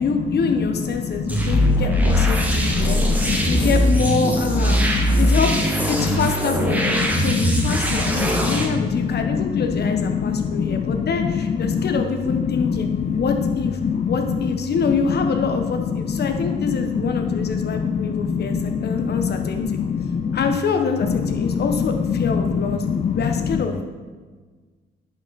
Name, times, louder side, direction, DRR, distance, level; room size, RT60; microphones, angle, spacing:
voice 1, 0.0-3.0 3.5-4.8 5.2-13.8 14.1-19.8 20.3-22.8 23.1-23.8, left 5 dB, 55° left, 5 dB, 1.1 m, -25 dB
sound 1, 1.3-8.7, equal, 10° right, 1.4 m, -20 dB
voice 2, 2.3-3.4 5.0-5.2 7.1-7.6 7.9-9.2 9.5-11.0 11.7-11.9 12.7-12.8 13.1-13.2 13.8-14.1 16.7-16.9 17.1-17.4 17.7-19.3 19.7-20.4 22.8-23.3, left 6 dB, 35° left, 8 dB, 0.4 m, -25 dB
10.5 x 5.8 x 4.1 m, 1.4 s
cardioid pair, 90°, 20 cm